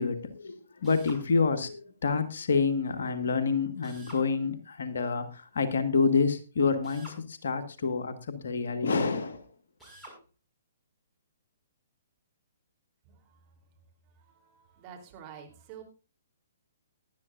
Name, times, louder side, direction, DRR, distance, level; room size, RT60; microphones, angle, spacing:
voice 1, 0.0-5.3 5.5-9.4, left 4 dB, 60° left, 8 dB, 1.6 m, -28 dB
Drill, 0.8-1.2 3.8-4.3 6.8-7.2 9.8-10.2, right 1 dB, ahead, 5.3 m, -48 dB
voice 2, 14.3-15.8, right 8 dB, 30° right, 2 dB, 3.5 m, -47 dB
19.0 x 11.5 x 2.6 m, 0.31 s
figure-of-eight pair, 125°, 0 cm